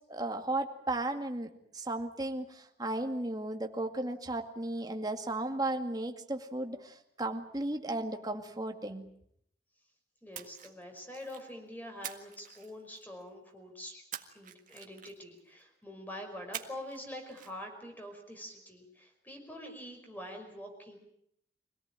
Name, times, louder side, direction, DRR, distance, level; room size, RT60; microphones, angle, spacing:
voice 1, 0.1-9.1, right 2 dB, 25° right, 4 dB, 2.2 m, -35 dB
voice 2, 10.2-14.0 14.3-21.0, left 1 dB, 10° left, 4 dB, 5.4 m, -45 dB
Splash splatter, 10.3-11.5 12.0-13.2 14.1-15.4 16.5-17.0 17.3-17.5, right 10 dB, 50° right, 1.8 m, -45 dB
25.0 x 18.0 x 9.0 m, 0.72 s
head